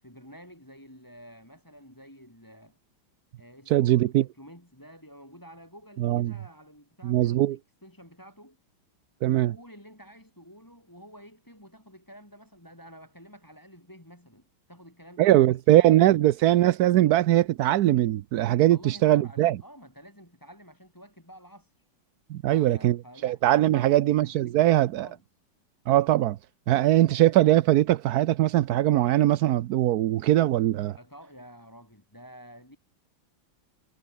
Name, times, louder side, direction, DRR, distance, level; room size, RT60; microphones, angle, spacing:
voice 1, 0.0-2.8 3.4-8.6 9.2-16.2 18.7-21.8 22.4-25.2 31.0-32.8, equal, 10° left, 5.3 m, -50 dB
voice 2, 3.7-4.2 6.0-6.3 7.0-7.6 9.2-9.5 15.2-19.6 22.3-23.0 23.2-25.1 25.9-26.4 26.7-31.0, right 14 dB, 70° right, 0.9 m, -21 dB
omnidirectional pair, 2.2 m